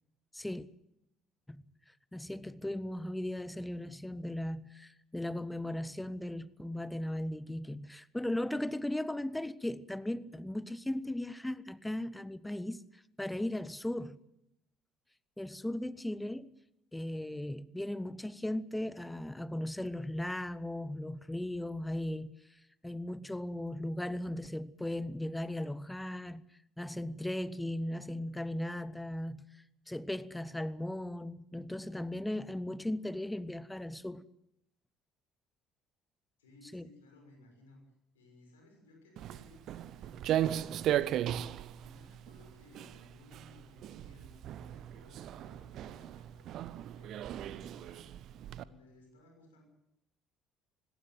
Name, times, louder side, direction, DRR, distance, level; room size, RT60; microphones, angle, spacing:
voice 1, 0.3-0.7 1.5-14.2 15.4-16.5 16.9-26.4 26.8-34.2 36.7-36.8, left 1 dB, 10° left, 0.9 m, -37 dB
voice 2, 36.4-37.8 38.1-49.6, left 2 dB, 80° left, 6.4 m, -60 dB
Walk footsteps, 39.2-48.6, right 11 dB, 55° right, 0.8 m, -37 dB
19.5 x 17.5 x 9.2 m
figure-of-eight pair, 55°, 0 cm